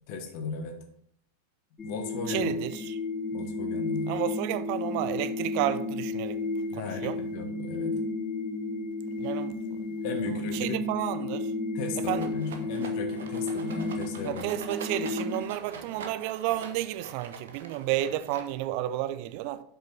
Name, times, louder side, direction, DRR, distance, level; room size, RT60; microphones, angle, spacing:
voice 1, 0.1-0.8 1.8-2.5 3.3-4.1 6.7-8.0 10.0-10.8 11.7-14.5, left 4 dB, 45° left, 1.4 m, -36 dB
sound 1, 1.8-15.4, left 2 dB, 20° left, 1.1 m, -32 dB
voice 2, 2.3-3.0 4.1-6.4 6.7-7.2 9.2-9.9 10.2-11.5 12.1-12.3 14.2-19.6, right 14 dB, 45° right, 0.5 m, -32 dB
Rattle, 12.1-18.8, right 5 dB, 60° right, 1.0 m, -44 dB
7.6 x 5.5 x 4.4 m
figure-of-eight pair, 90°, 0 cm